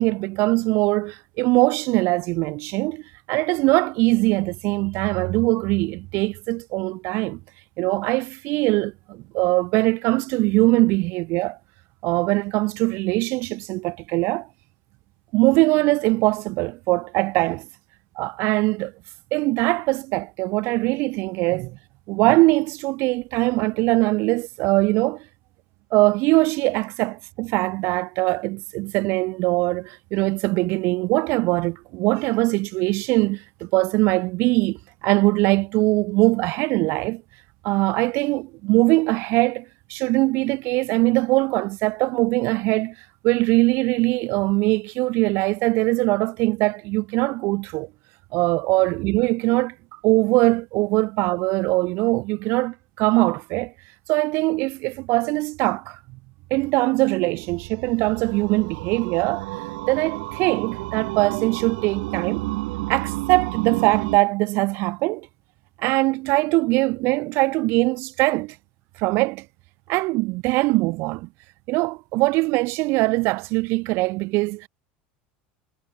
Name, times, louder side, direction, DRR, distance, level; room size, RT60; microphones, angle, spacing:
voice 1, 0.0-3.0 3.3-7.4 7.8-11.6 12.0-14.5 15.3-17.7 18.2-18.9 19.3-21.8 22.1-25.2 25.9-37.2 37.6-42.9 43.2-47.9 48.3-49.7 50.0-53.7 54.1-56.0 56.5-59.5 59.9-62.4 62.9-65.3 65.8-68.6 69.0-69.4 69.9-71.3 71.7-74.7, right 23 dB, 60° right, 2.6 m, -22 dB
sound 1, 57.4-64.2, right 22 dB, 80° right, 2.9 m, -31 dB
supercardioid pair, 125°, 5 cm